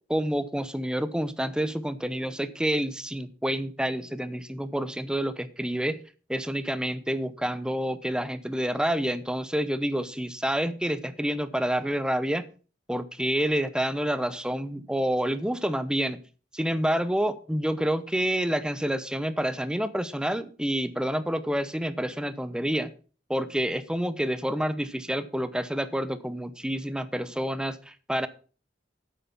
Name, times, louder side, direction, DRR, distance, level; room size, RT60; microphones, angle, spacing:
voice 1, 0.1-6.0 6.3-12.4 12.9-16.2 16.5-22.9 23.3-28.3, equal, 5° right, 13 dB, 0.8 m, -28 dB
9.1 x 8.2 x 5.8 m, 0.37 s
head